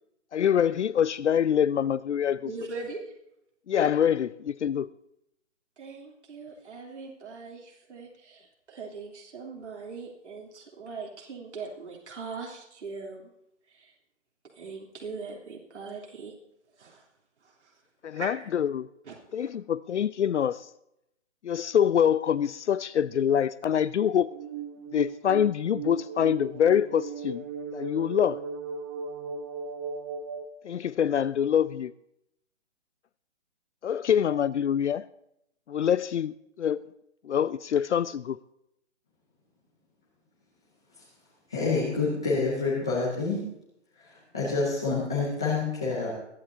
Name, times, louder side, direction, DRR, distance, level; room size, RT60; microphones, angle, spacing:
voice 1, 0.3-2.5 3.7-4.9 18.0-18.9 19.3-20.7 21.4-24.3 24.9-27.4 27.7-28.4 30.6-31.9 33.8-35.1 35.7-36.8 37.2-38.4, left 9 dB, 70° left, 0.6 m, -25 dB
voice 2, 2.4-3.1 5.8-13.2 13.7-13.9 14.5-16.3 16.8-17.1 17.4-17.8 18.1-18.5 19.0-19.5, right 4 dB, 70° right, 3.2 m, -41 dB
sound 1, 24.3-30.5, right 5 dB, 20° right, 0.8 m, -37 dB
voice 3, 41.5-43.4 44.0-46.1, left 4 dB, 5° left, 0.4 m, -27 dB
21.5 x 12.0 x 2.7 m
hypercardioid pair, 145°, 36 cm